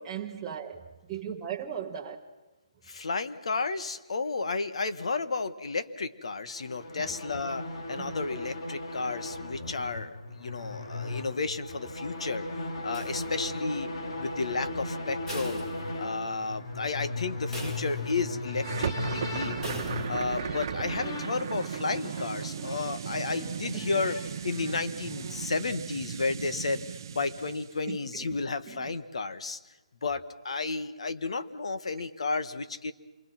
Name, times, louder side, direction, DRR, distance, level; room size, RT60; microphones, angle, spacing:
voice 1, 0.0-2.2 7.0-7.1 8.0-8.1 23.6-23.9 27.9-28.4 28.7-28.9, right 8 dB, 10° right, 1.1 m, -38 dB
voice 2, 2.8-13.9 14.2-15.6 16.0-19.6 20.1-26.8 27.1-29.6 30.0-32.9, left 4 dB, 65° left, 1.6 m, -32 dB
sound 1, 6.5-25.5, left 2 dB, 50° left, 3.8 m, -37 dB
sound 2, 12.9-13.8 15.3-16.4 16.8-16.9 17.5-18.4 19.6-20.4, right 1 dB, 10° left, 2.1 m, -43 dB
sound 3, 18.6-27.8, right 8 dB, 35° right, 0.7 m, -36 dB
27.5 x 22.5 x 6.0 m
hypercardioid pair, 165°, 3 cm